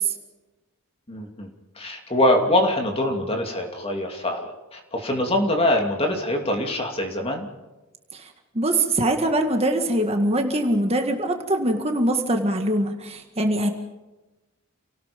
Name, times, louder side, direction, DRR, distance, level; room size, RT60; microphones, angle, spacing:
voice 1, 1.1-1.5 1.8-7.5, left 1 dB, 25° left, 2 dB, 2.8 m, -24 dB
voice 2, 8.6-13.7, right 1 dB, 30° right, 4 dB, 1.8 m, -23 dB
28.5 x 18.5 x 5.3 m, 1.1 s
head